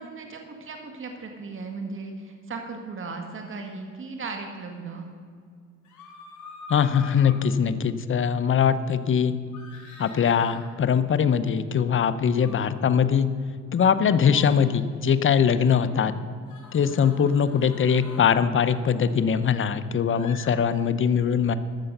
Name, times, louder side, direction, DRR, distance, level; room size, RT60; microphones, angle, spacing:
voice 1, 0.0-5.1 12.3-12.6 15.9-16.2, right 4 dB, 40° right, 4 dB, 1.7 m, -37 dB
sound 1, 5.8-7.4 9.5-10.6 12.3-12.6 14.2-14.5 16.4-18.4 20.1-20.5, left 4 dB, 75° left, 3.0 m, -45 dB
voice 2, 6.7-9.3 10.0-13.3 13.7-16.1 16.7-21.5, left 7 dB, 40° left, 12 dB, 0.8 m, -22 dB
13.0 x 6.9 x 6.7 m, 2.1 s
cardioid pair, 90°, 30 cm